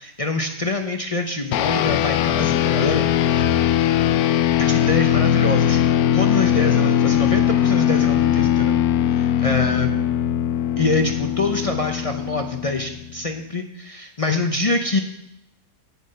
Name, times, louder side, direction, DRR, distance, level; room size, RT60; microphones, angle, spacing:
voice 1, 0.0-3.0 4.6-5.8 6.1-8.8 9.1-9.9 10.8-15.0, left 3 dB, 45° left, 4 dB, 0.4 m, -25 dB
sound 1, 1.5-13.2, left 10 dB, 70° left, 1.0 m, -20 dB
8.6 x 7.8 x 6.6 m, 0.84 s
omnidirectional pair, 1.7 m